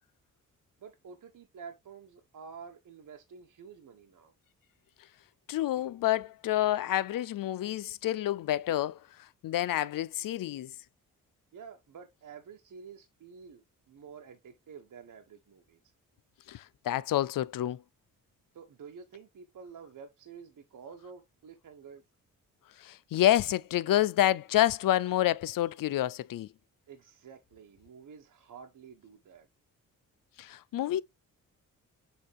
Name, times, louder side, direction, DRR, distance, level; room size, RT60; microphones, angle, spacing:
voice 1, 0.8-4.3 11.5-15.8 18.5-22.0 26.9-29.5, right 6 dB, 70° right, 1.3 m, -49 dB
voice 2, 5.5-9.0 9.4-10.7 16.5-17.8 22.8-26.5 30.4-31.0, left 13 dB, 75° left, 0.6 m, -28 dB
7.1 x 4.3 x 3.3 m
cardioid pair, 80°, 33 cm